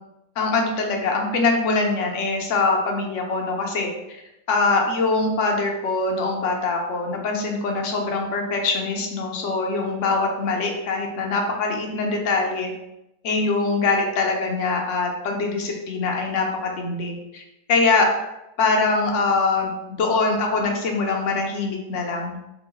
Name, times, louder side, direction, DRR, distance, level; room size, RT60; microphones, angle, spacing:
voice 1, 0.4-3.9 4.5-12.7 13.2-17.4 17.7-18.1 18.6-22.4, left 3 dB, 65° left, 1 dB, 0.8 m, -23 dB
3.0 x 2.8 x 3.9 m, 0.90 s
omnidirectional pair, 1.8 m